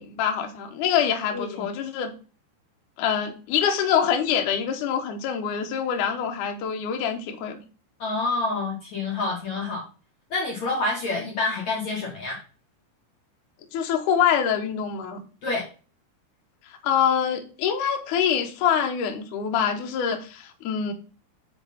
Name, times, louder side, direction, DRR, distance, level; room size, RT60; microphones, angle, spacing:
voice 1, 0.0-2.1 3.0-7.6 13.7-15.2 16.8-20.9, left 8 dB, 80° left, 3 dB, 1.8 m, -25 dB
voice 2, 1.3-1.6 8.0-9.8 10.3-12.4 15.4-15.6, left 3 dB, 65° left, -3 dB, 1.8 m, -27 dB
8.4 x 4.9 x 4.1 m, 0.36 s
omnidirectional pair, 5.3 m